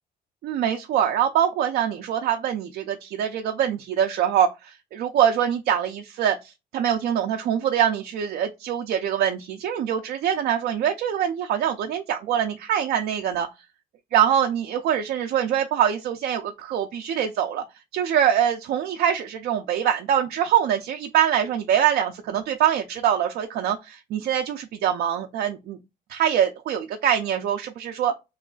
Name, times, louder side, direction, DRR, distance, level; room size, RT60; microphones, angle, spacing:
voice 1, 0.4-13.5 14.1-17.6 17.9-25.8 26.1-28.1, right 9 dB, 65° right, 0.4 m, -24 dB
3.1 x 2.3 x 3.7 m
cardioid pair, 110°, 17 cm